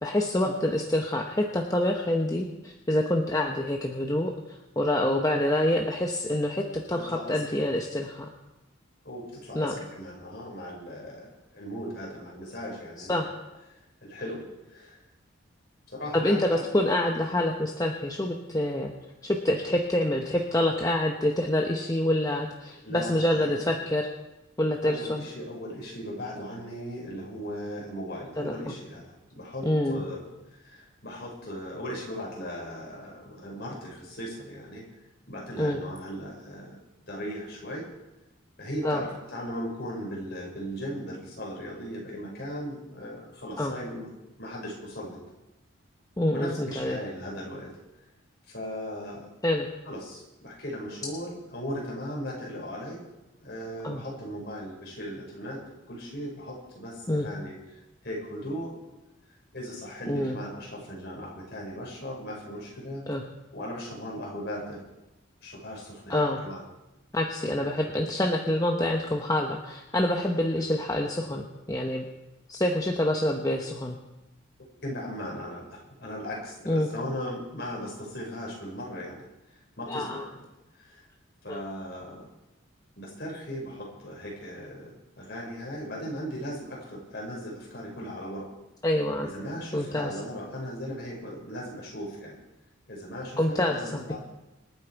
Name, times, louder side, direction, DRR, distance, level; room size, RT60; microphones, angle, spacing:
voice 1, 0.0-8.3 9.5-9.7 13.0-13.3 16.1-18.9 19.2-24.1 24.6-25.2 28.4-28.5 29.6-30.0 35.6-35.8 38.8-39.0 43.6-43.7 46.2-47.0 49.4-49.7 53.8-54.0 57.1-57.3 60.1-60.4 63.1-63.2 66.1-66.4 67.1-72.0 72.5-74.0 76.7-76.9 79.9-80.2 81.5-81.6 88.8-89.3 89.7-90.1 93.4-94.2, left 1 dB, 15° left, 2 dB, 0.9 m, -26 dB
voice 2, 6.9-7.6 9.0-13.3 13.7-15.0 15.9-16.7 22.7-23.5 24.8-34.8 35.3-36.8 37.1-37.9 38.6-44.1 44.4-45.2 46.3-47.7 48.4-49.3 49.9-53.0 53.4-58.7 59.5-63.1 63.5-64.8 65.4-66.6 67.6-67.8 72.9-73.0 74.8-79.2 79.5-80.4 80.7-81.1 81.4-82.3 83.0-88.5 89.2-92.4 92.9-94.2, equal, 50° left, -3 dB, 5.3 m, -38 dB
26.0 x 8.9 x 4.7 m, 0.98 s
head